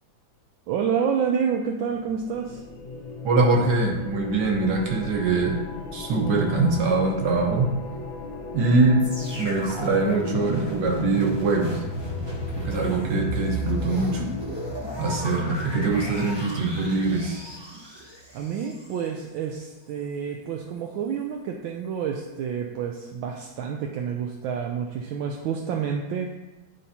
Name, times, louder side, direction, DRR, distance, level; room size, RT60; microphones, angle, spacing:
voice 1, 0.7-2.6 18.3-26.3, right 7 dB, 80° right, 2 dB, 1.3 m, -28 dB
sound 1, 1.9-17.3, left 4 dB, 80° left, 1.6 m, -38 dB
voice 2, 3.2-5.6 5.9-7.7 8.5-9.1 9.4-11.8 12.6-14.2 15.0-17.4, right 3 dB, 60° right, 0 dB, 1.7 m, -23 dB
sound 2, 9.0-19.1 19.7-19.8, equal, 30° right, 0.4 m, -34 dB
10.5 x 4.0 x 2.8 m, 1.1 s
omnidirectional pair, 2.2 m